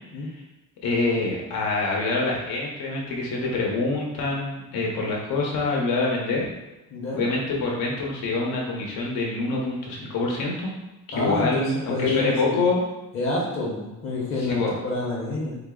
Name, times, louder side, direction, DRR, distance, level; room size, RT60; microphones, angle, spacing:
voice 1, 0.8-6.5 7.2-10.7 11.1-12.8 14.4-14.7, left 3 dB, 80° left, -2 dB, 0.9 m, -26 dB
voice 2, 6.9-7.2 11.1-12.7 13.1-15.6, left 2 dB, 40° left, -4 dB, 0.8 m, -27 dB
3.7 x 2.0 x 3.7 m, 1.0 s
cardioid pair, 180°, 35 cm